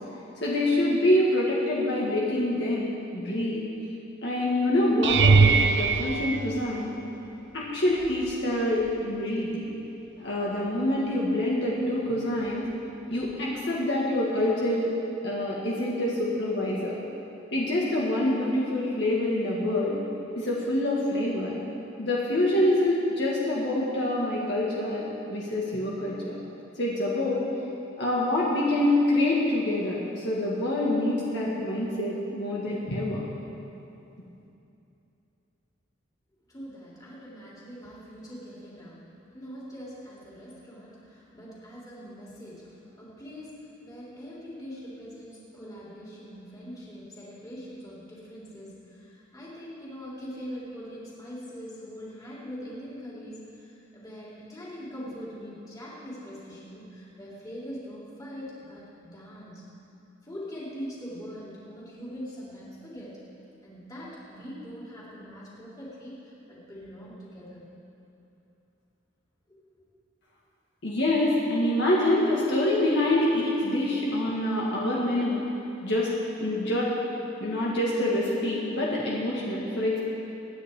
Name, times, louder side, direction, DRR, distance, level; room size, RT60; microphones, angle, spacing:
voice 1, 0.4-3.6 4.2-6.9 7.5-9.7 10.2-12.7 13.1-14.9 15.2-17.0 17.5-20.0 20.4-21.6 22.0-25.0 25.3-26.3 26.8-27.4 28.0-33.2 70.8-75.4 75.8-76.1 76.4-76.9 77.4-80.0, left 1 dB, 60° left, -5 dB, 2.1 m, -26 dB
sound 1, 5.0-7.3 8.0-8.4 8.8-9.0 13.3-13.4, right 4 dB, 60° right, 0.6 m, -22 dB
voice 2, 36.5-59.7 60.2-63.2 63.6-67.6 69.5-69.6, equal, 20° left, -7 dB, 3.6 m, -42 dB
25.5 x 10.0 x 3.9 m, 2.9 s
head